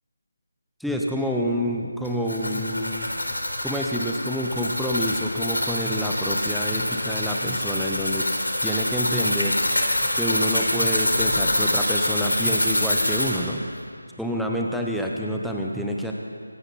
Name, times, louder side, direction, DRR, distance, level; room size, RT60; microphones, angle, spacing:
voice 1, 0.8-3.1 3.6-8.3 8.6-9.5 10.1-13.6 14.2-16.1, equal, ahead, -2 dB, 0.9 m, -28 dB
sound 1, 2.0-13.4, left 1 dB, 70° left, 3.6 m, -25 dB
24.5 x 12.5 x 4.3 m, 2.3 s
figure-of-eight pair, 160°, 0 cm